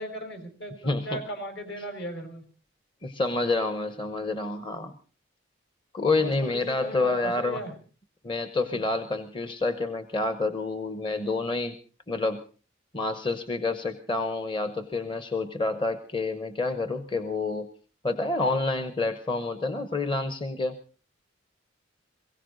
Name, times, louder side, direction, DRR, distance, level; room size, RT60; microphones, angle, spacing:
voice 1, 0.0-2.4 6.2-7.8 8.6-8.8, right 1 dB, 60° left, 7 dB, 4.9 m, -37 dB
voice 2, 0.8-1.2 3.0-5.0 5.9-7.6 8.2-11.8 12.1-12.4 12.9-17.7 18.0-20.8, left 3 dB, 25° left, 10 dB, 0.9 m, -28 dB
22.5 x 16.5 x 3.9 m, 0.37 s
head